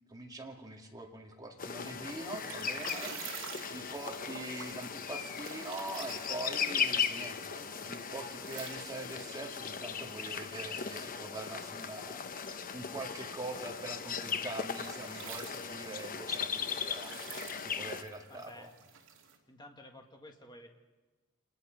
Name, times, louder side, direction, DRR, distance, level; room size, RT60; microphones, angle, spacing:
voice 1, 0.1-3.4 3.7-12.3 12.7-17.2 17.6-18.7, right 2 dB, 15° right, 1 dB, 2.2 m, -43 dB
sound 1, 1.6-18.0, left 6 dB, 40° left, 0.9 m, -38 dB
sound 2, 2.1-19.4, right 7 dB, 65° right, 2.6 m, -51 dB
voice 2, 18.3-18.7 19.5-20.7, left 1 dB, 20° left, 3 dB, 1.9 m, -52 dB
26.5 x 20.0 x 5.3 m, 1.2 s
head